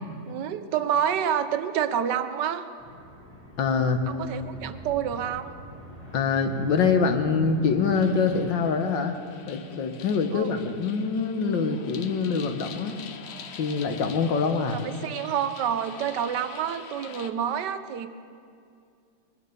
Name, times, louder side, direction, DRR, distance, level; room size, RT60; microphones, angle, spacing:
voice 1, 0.3-2.6 4.1-5.5 10.3-10.6 14.7-18.1, right 9 dB, 75° right, 11 dB, 1.3 m, -28 dB
sound 1, 2.8-8.6, left 1 dB, 15° right, 5.4 m, -44 dB
voice 2, 3.6-4.0 6.1-9.2 9.5-13.0 13.6-14.8, left 5 dB, 85° left, 6 dB, 1.8 m, -24 dB
sound 2, 7.9-17.3, left 6 dB, 55° left, 0.7 m, -45 dB
21.0 x 10.0 x 6.8 m, 2.4 s
omnidirectional pair, 1.9 m